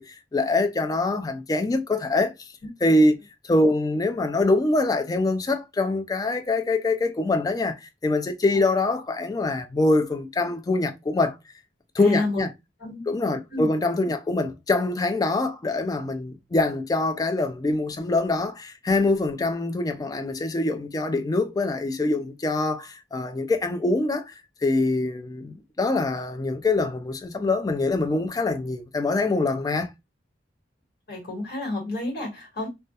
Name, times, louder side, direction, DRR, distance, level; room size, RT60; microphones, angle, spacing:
voice 1, 0.0-2.3 2.8-3.1 3.4-11.4 11.9-12.5 13.1-24.3 24.6-29.9, left 2 dB, 20° left, 0.3 m, -24 dB
voice 2, 12.0-12.4 12.8-13.1 13.5-13.7 31.1-32.7, left 2 dB, 65° left, 1.3 m, -30 dB
2.2 x 2.1 x 2.7 m
head